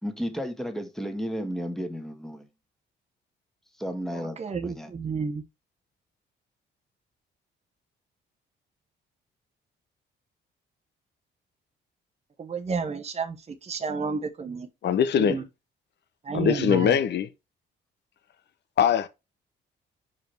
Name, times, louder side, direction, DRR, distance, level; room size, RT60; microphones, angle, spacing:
voice 1, 0.0-2.5 3.8-4.4 4.6-4.9, equal, ahead, 1.6 m, -33 dB
voice 2, 4.1-5.4 12.4-14.7 15.2-15.5 16.2-17.0, right 5 dB, 35° right, 1.0 m, -31 dB
voice 3, 14.8-15.4 16.3-17.3 18.8-19.1, left 8 dB, 60° left, 0.8 m, -22 dB
5.1 x 4.8 x 4.5 m
cardioid pair, 90°, 20 cm